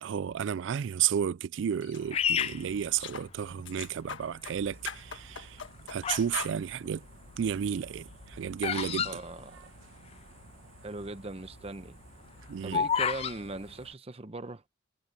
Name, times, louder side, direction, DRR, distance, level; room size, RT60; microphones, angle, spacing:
voice 1, 0.0-5.6 5.9-7.0 7.4-9.1 12.5-12.8, right 8 dB, 70° right, 0.3 m, -32 dB
sound 1, 1.8-2.0 2.4-2.5 3.0-3.3 3.6-4.6 4.8-6.0 6.3-6.6, left 6 dB, 75° left, 1.3 m, -40 dB
Bird vocalization bird call bird song, 2.1-3.6 4.3-4.7 5.4-6.4 6.7-10.1 10.4-10.5 10.7-11.0 11.5-13.4, left 7 dB, 30° left, 0.3 m, -31 dB
sound 2, 4.5-13.9, right 3 dB, 85° right, 1.1 m, -54 dB
voice 2, 9.0-9.7 10.8-12.0 12.6-14.6, right 2 dB, 30° right, 0.8 m, -40 dB
head